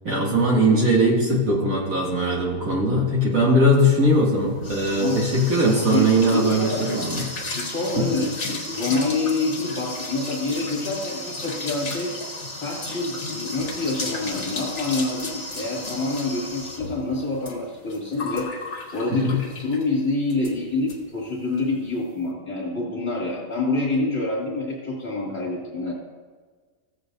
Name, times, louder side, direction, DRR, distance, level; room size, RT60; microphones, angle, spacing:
voice 1, 0.0-7.2 7.9-8.1 19.1-19.4, equal, 55° right, -4 dB, 2.7 m, -20 dB
sound 1, 4.2-19.9 20.3-20.6 20.9-21.0 21.3-21.6, left 2 dB, 45° left, 1.6 m, -34 dB
voice 2, 5.9-6.9 7.5-8.3 8.7-12.1 12.5-18.5 18.9-25.9, left 3 dB, 30° left, -5 dB, 1.9 m, -27 dB
15.5 x 8.0 x 2.7 m, 1.5 s
omnidirectional pair, 1.7 m